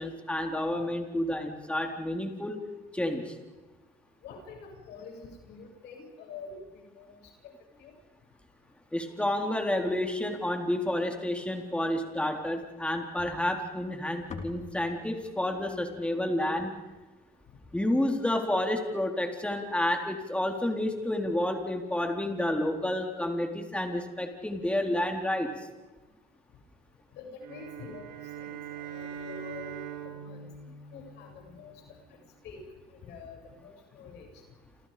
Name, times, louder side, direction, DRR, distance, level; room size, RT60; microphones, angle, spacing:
voice 1, 0.0-2.6 2.9-3.4 8.9-16.7 17.7-25.5, left 1 dB, 5° left, 3 dB, 4.0 m, -30 dB
voice 2, 4.2-7.5 7.8-7.9 27.1-30.5 30.9-32.0 32.4-32.6 32.9-34.3, left 4 dB, 80° left, 2 dB, 7.4 m, -46 dB
sound 1, 13.2-17.5, left 4 dB, 45° left, 3.7 m, -47 dB
sound 2, 27.4-31.8, right 8 dB, 80° right, 3.7 m, -42 dB
28.5 x 28.5 x 5.2 m, 1.2 s
cardioid pair, 110°, 17 cm